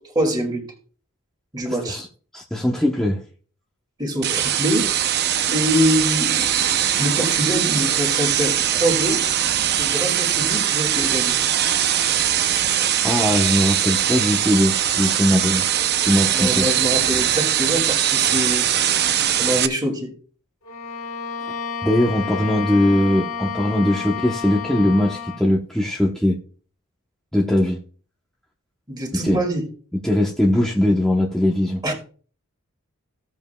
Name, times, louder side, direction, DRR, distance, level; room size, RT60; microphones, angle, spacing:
voice 1, 0.1-0.7 1.5-2.0 4.0-4.9 5.5-6.6 7.0-9.2 9.8-11.5 16.3-18.7 19.4-20.1 28.9-29.6 31.8-31.9, equal, 20° right, 1 dB, 2.3 m, -24 dB
voice 2, 1.7-2.1 2.3-3.2 13.0-15.6 16.0-16.7 21.8-26.4 27.3-27.8 29.2-29.4 30.0-31.8, left 1 dB, 5° left, -2 dB, 0.9 m, -20 dB
sound 1, 4.2-19.7, right 10 dB, 50° right, 0.6 m, -21 dB
Bowed string instrument, 20.6-25.5, left 6 dB, 70° left, 1.6 m, -31 dB
16.0 x 7.2 x 2.3 m, 0.42 s
head